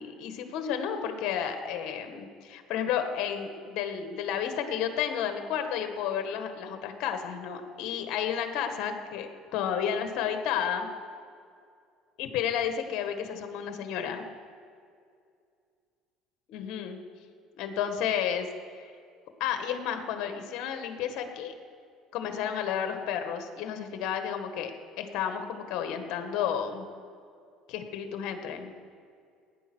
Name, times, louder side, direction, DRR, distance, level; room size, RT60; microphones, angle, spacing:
voice 1, 0.0-10.9 12.2-14.3 16.5-17.0 17.5-18.5 18.8-18.9 19.4-21.5 22.1-24.7 25.0-26.9 27.7-28.7, left 8 dB, 65° left, 6 dB, 1.6 m, -32 dB
17.5 x 9.8 x 6.2 m, 2.3 s
cardioid pair, 115°, 0 cm